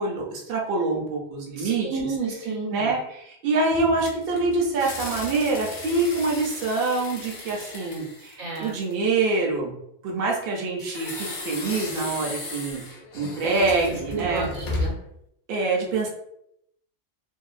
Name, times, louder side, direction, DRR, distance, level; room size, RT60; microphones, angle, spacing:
voice 1, 0.0-1.9 2.7-9.7 10.0-12.8 13.1-14.5 15.5-16.1, right 3 dB, 55° right, -1 dB, 0.7 m, -25 dB
voice 2, 1.6-2.9 8.4-8.7 13.2-15.0, right 4 dB, 85° right, -3 dB, 1.2 m, -32 dB
sound 1, 3.7-9.1 10.8-15.1, left 2 dB, 55° left, 0.6 m, -35 dB
2.8 x 2.3 x 2.4 m, 0.76 s
omnidirectional pair, 1.4 m